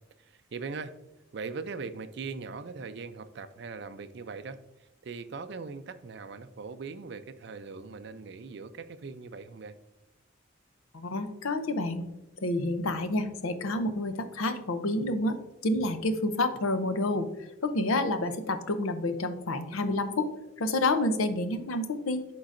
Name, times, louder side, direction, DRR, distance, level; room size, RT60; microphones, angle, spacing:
voice 1, 0.2-0.9 1.3-9.8, right 4 dB, 55° right, 11 dB, 0.4 m, -40 dB
voice 2, 11.0-12.1 12.4-17.3 17.6-20.3 20.6-22.2, left 2 dB, 85° left, 9 dB, 0.7 m, -29 dB
11.5 x 3.8 x 2.5 m, 0.97 s
head